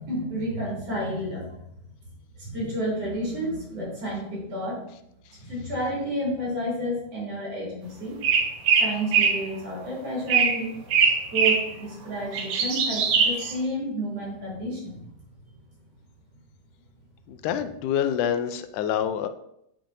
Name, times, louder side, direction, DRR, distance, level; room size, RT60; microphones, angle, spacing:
voice 1, 0.0-1.5 2.4-4.9 5.4-8.2 8.8-10.7 11.3-15.1, equal, 50° right, -5 dB, 3.5 m, -30 dB
sound 1, 8.2-9.4 10.3-10.6 10.9-11.7 12.1-13.5, right 6 dB, 75° right, 1.2 m, -21 dB
voice 2, 17.3-19.3, left 9 dB, 90° left, 9 dB, 2.1 m, -26 dB
9.0 x 4.5 x 2.6 m, 0.77 s
omnidirectional pair, 3.5 m